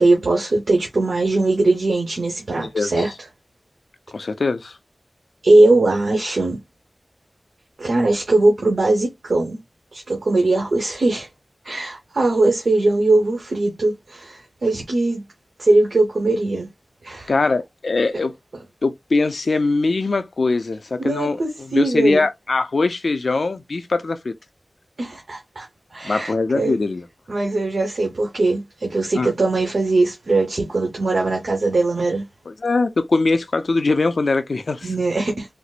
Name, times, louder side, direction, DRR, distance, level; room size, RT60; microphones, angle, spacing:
voice 1, 0.0-3.1 5.4-6.6 7.8-9.6 9.9-11.3 11.6-15.2 15.6-16.7 17.0-17.3 21.0-22.2 25.0-25.7 25.9-26.8 27.3-32.2 34.8-35.5, right 2 dB, 80° right, 1.1 m, -20 dB
voice 2, 2.6-3.1 4.1-4.8 17.3-18.3 18.8-24.3 26.0-27.1 29.2-29.3 32.5-34.9, left 3 dB, 75° left, 0.5 m, -22 dB
4.3 x 2.1 x 2.4 m
wide cardioid pair, 60°, 0 cm